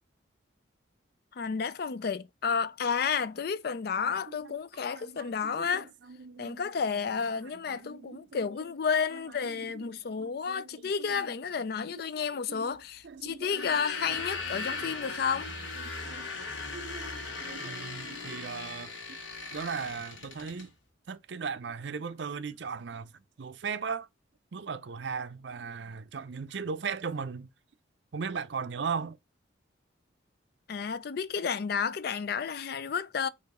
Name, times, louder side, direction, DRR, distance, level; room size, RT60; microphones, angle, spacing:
voice 1, 1.3-5.9 6.4-15.5 30.7-33.3, left 6 dB, 55° left, 0.4 m, -31 dB
voice 2, 4.9-6.7 7.4-8.7 9.1-9.2 9.5-11.3 11.8-12.0 12.5-12.7 13.0-15.2 15.8-16.3 16.7-19.2 19.5-20.7 21.1-24.1 24.5-27.5 28.1-29.2, right 5 dB, 65° right, 0.5 m, -39 dB
sound 1, 13.4-20.7, left 3 dB, 80° left, 1.8 m, -38 dB
4.7 x 2.9 x 3.6 m
head